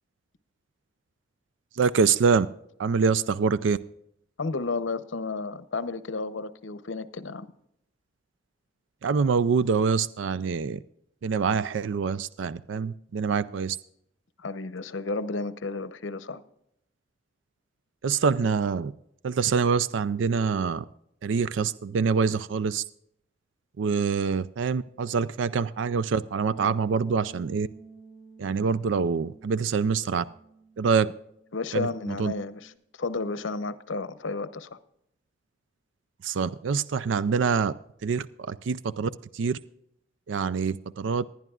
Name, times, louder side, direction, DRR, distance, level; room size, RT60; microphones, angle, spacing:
voice 1, 1.7-2.5 2.8-3.8 9.0-10.8 11.2-13.8 18.0-18.9 19.2-20.8 21.2-22.8 23.8-27.7 28.4-30.2 30.8-31.1 31.7-32.3 36.2-37.7 38.0-39.6 40.3-41.3, right 5 dB, 85° right, 16 dB, 0.4 m, -25 dB
voice 2, 4.4-7.5 14.4-16.4 31.5-32.7 33.0-34.8, left 3 dB, 90° left, 13 dB, 0.8 m, -32 dB
Bass guitar, 26.5-32.8, right 4 dB, 10° left, 1.9 m, -50 dB
20.0 x 11.0 x 2.4 m, 0.74 s
head